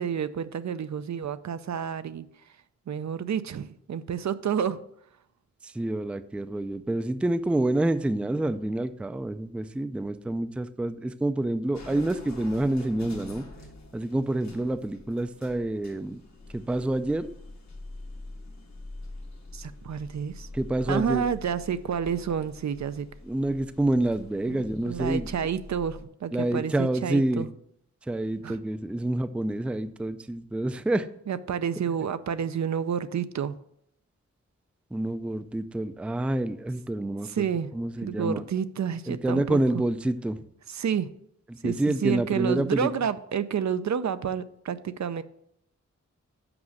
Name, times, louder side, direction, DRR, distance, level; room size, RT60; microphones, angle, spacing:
voice 1, 0.0-2.3 2.9-4.8 19.5-20.5 20.9-23.1 24.5-24.6 24.9-27.5 28.4-28.6 31.3-33.5 37.3-37.7 38.0-39.6 40.7-41.1 41.6-45.2, right 7 dB, 70° right, 0.5 m, -29 dB
voice 2, 5.6-13.4 13.9-16.2 16.5-17.3 20.5-21.2 23.2-25.3 26.3-27.5 28.1-31.1 34.9-37.5 37.7-38.4 39.1-40.4 41.5-42.9, right 1 dB, 5° right, 0.3 m, -28 dB
sound 1, 11.7-26.0, left 2 dB, 70° left, 1.3 m, -45 dB
6.0 x 5.1 x 6.4 m
wide cardioid pair, 110°, 30 cm